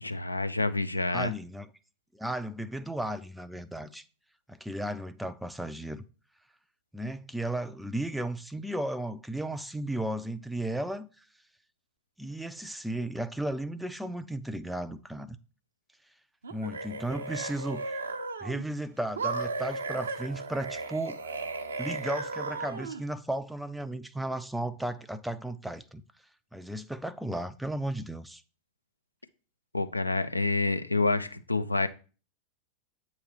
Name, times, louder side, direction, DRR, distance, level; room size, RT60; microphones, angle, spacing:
voice 1, 0.0-1.3 29.7-31.9, left 3 dB, 85° left, 0.4 m, -28 dB
voice 2, 1.1-1.7 2.1-4.0 4.5-6.0 6.9-11.1 12.2-15.4 16.5-18.0 18.4-21.2 21.8-26.0 26.5-28.4, right 1 dB, 5° right, 0.4 m, -34 dB
sound 1, 16.4-18.7 19.2-23.0, right 3 dB, 70° right, 0.6 m, -35 dB
8.3 x 3.2 x 4.5 m
figure-of-eight pair, 90°, 0 cm